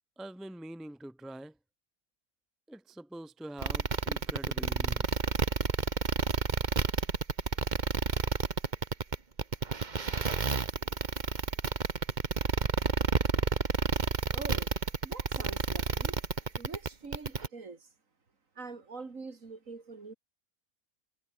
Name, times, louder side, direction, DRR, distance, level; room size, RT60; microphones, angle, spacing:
voice 1, 0.2-1.5 2.7-5.2, right 1 dB, ahead, 0.7 m, -45 dB
sound 1, 3.6-17.5, right 4 dB, 35° right, 1.4 m, -30 dB
voice 2, 14.3-14.7 15.0-16.2 16.6-17.9 18.6-20.1, right 4 dB, 65° right, 3.0 m, -44 dB
omnidirectional pair, 1.5 m